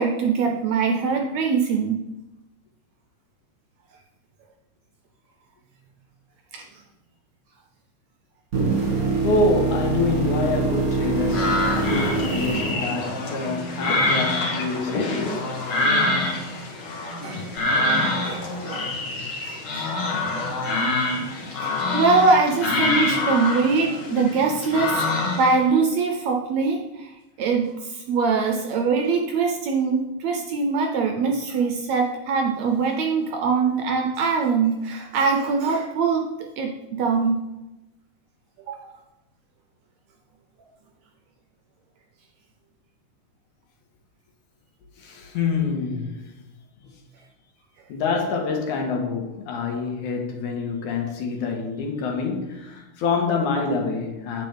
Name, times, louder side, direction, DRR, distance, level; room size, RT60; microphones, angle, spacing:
voice 1, 0.0-2.0 6.5-6.6 17.2-18.9 19.4-20.4 20.8-21.0 21.6-36.3 36.6-37.5 38.7-38.9, right 4 dB, 75° right, 1.7 m, -23 dB
sound 1, 8.5-13.6 17.6-17.7, right 3 dB, 35° right, 1.8 m, -25 dB
voice 2, 9.2-15.5 19.1-19.2 45.0-46.3 46.8-47.0 47.9-54.5, left 3 dB, 75° left, 2.5 m, -26 dB
sound 2, 11.3-25.6, left 2 dB, 50° left, 1.8 m, -25 dB
8.9 x 7.8 x 3.4 m
omnidirectional pair, 3.7 m